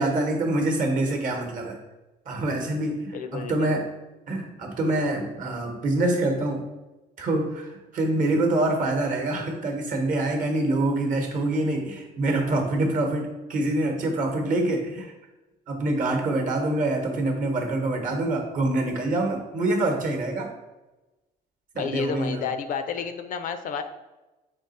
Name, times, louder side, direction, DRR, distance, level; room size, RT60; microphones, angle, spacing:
voice 1, 0.0-1.8 2.3-3.8 4.3-6.7 7.2-15.1 15.7-20.5 21.7-22.5, right 2 dB, 50° right, 3 dB, 1.0 m, -25 dB
voice 2, 3.1-3.7 21.8-23.8, left 6 dB, 55° left, 9 dB, 0.4 m, -30 dB
3.6 x 3.1 x 4.1 m, 1.1 s
cardioid pair, 110°, 17 cm